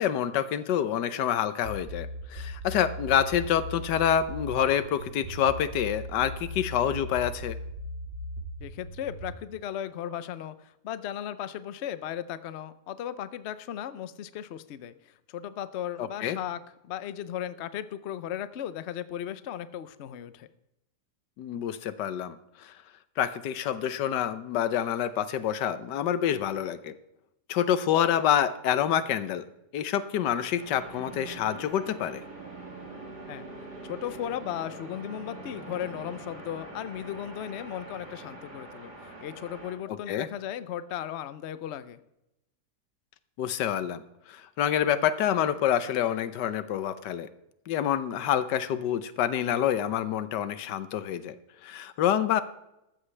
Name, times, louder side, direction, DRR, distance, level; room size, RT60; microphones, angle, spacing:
voice 1, 0.0-7.6 16.0-16.4 21.4-22.7 23.2-26.9 27.5-29.4 29.7-32.2 39.9-40.3 43.4-44.0 44.3-47.3 47.7-51.3 51.6-52.4, left 10 dB, 85° left, 14 dB, 1.4 m, -27 dB
sound 1, 1.6-9.3, left 1 dB, 45° right, 1.3 m, -38 dB
voice 2, 8.6-14.9 15.3-20.5 33.3-33.5 33.8-42.0, left 10 dB, 60° left, 14 dB, 0.7 m, -36 dB
sound 2, 30.5-39.8, right 2 dB, 70° right, 3.6 m, -44 dB
14.5 x 13.0 x 3.3 m, 0.88 s
omnidirectional pair, 1.8 m